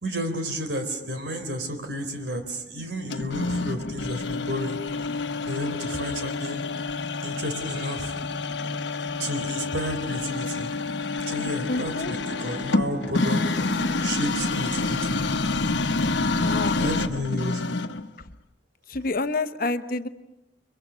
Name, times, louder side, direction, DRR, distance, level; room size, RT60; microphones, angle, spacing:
voice 1, 0.0-4.8 5.4-6.6 7.2-8.1 9.2-10.7 11.3-15.2 16.8-17.6, equal, 75° right, 7 dB, 3.9 m, -32 dB
sound 1, 3.1-18.1, left 3 dB, 80° left, 1.1 m, -28 dB
Bowed string instrument, 11.2-15.8, right 1 dB, 5° right, 3.5 m, -42 dB
voice 2, 11.7-12.1 16.4-16.8 18.2-18.3 18.9-20.1, left 3 dB, 55° left, 10 dB, 1.1 m, -28 dB
30.0 x 23.5 x 6.3 m, 0.88 s
head